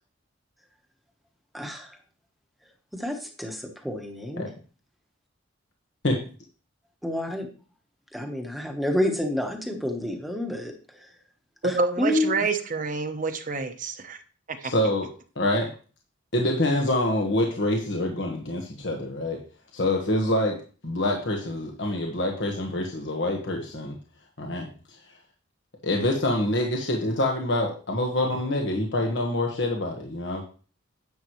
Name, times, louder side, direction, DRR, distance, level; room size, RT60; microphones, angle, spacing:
voice 1, 1.5-2.0 2.9-4.5 7.0-7.5 8.1-11.1 11.6-12.3, left 1 dB, ahead, 3 dB, 1.2 m, -29 dB
voice 2, 11.6-14.2 14.5-14.7, right 3 dB, 40° right, 7 dB, 0.9 m, -27 dB
voice 3, 14.6-15.1 15.3-15.7 16.3-19.4 19.7-20.6 20.8-24.0 24.4-25.0 25.8-30.4, left 1 dB, 60° left, 1 dB, 1.4 m, -26 dB
10.5 x 8.1 x 3.1 m, 0.38 s
head